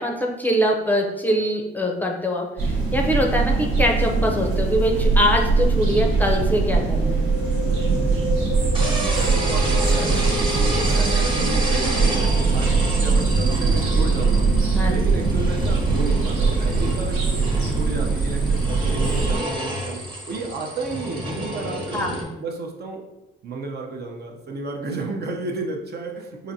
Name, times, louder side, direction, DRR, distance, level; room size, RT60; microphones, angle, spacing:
voice 1, 0.0-7.2 14.7-15.0 21.9-22.3, equal, 10° left, 0 dB, 0.6 m, -23 dB
sound 1, 2.6-19.4, right 4 dB, 80° right, 1.1 m, -21 dB
sound 2, 6.5-17.8, left 2 dB, 80° left, 0.5 m, -35 dB
sound 3, 8.7-22.2, right 1 dB, 25° right, 1.0 m, -29 dB
voice 2, 8.8-14.5 14.9-23.0 23.4-26.5, right 3 dB, 55° right, 1 dB, 0.7 m, -33 dB
5.1 x 2.5 x 2.7 m, 1.0 s
cardioid pair, 90°, 20 cm